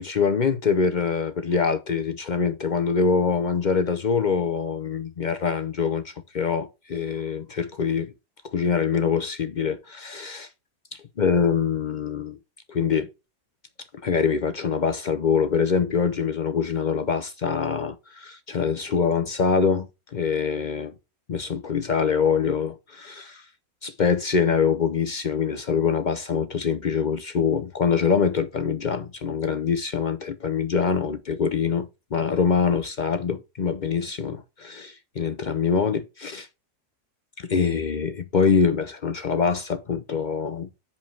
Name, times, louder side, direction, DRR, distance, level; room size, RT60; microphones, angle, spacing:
voice 1, 0.0-8.1 8.5-10.5 11.2-12.4 12.7-13.1 14.0-20.9 21.3-23.4 23.8-31.8 32.1-36.5 37.4-40.7, left 6 dB, 70° left, 0.4 m, -24 dB
6.9 x 5.4 x 4.5 m
omnidirectional pair, 1.7 m